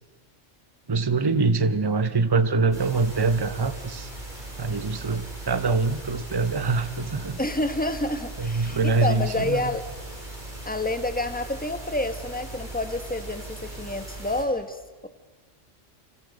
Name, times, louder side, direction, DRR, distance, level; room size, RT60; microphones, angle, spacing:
voice 1, 0.9-4.1 4.6-7.4 8.4-9.7, right 4 dB, 20° right, 11 dB, 0.8 m, -24 dB
sound 1, 2.7-14.4, right 1 dB, 40° right, 4.9 m, -39 dB
voice 2, 7.4-9.8 10.6-15.1, left 2 dB, 5° left, 8 dB, 1.2 m, -29 dB
29.5 x 25.5 x 5.2 m, 1.3 s
omnidirectional pair, 1.3 m